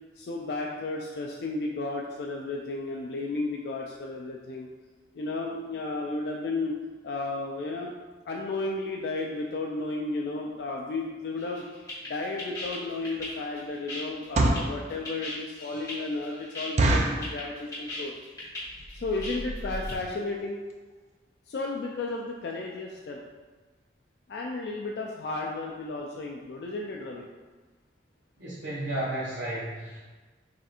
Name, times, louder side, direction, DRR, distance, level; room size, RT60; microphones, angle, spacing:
voice 1, 0.2-4.7 5.1-6.8 7.0-7.9 8.3-11.6 12.1-18.1 18.9-20.6 21.5-23.2 24.3-27.3, left 2 dB, 60° left, -1 dB, 0.3 m, -33 dB
sound 1, 11.4-19.9, left 1 dB, 20° left, 1.2 m, -38 dB
sound 2, 12.6-12.7 13.2-13.4 14.1-14.8 15.3-15.4 15.7-15.8 16.2-16.3 16.8-17.3 17.9-18.2 18.4-18.5 18.8-19.0 19.6-19.7 19.9-20.1 20.4-20.5 20.7-20.8, right 2 dB, 35° right, 0.3 m, -24 dB
voice 2, 28.4-30.1, right 1 dB, 75° right, -9 dB, 0.9 m, -33 dB
3.4 x 2.4 x 4.1 m, 1.3 s
head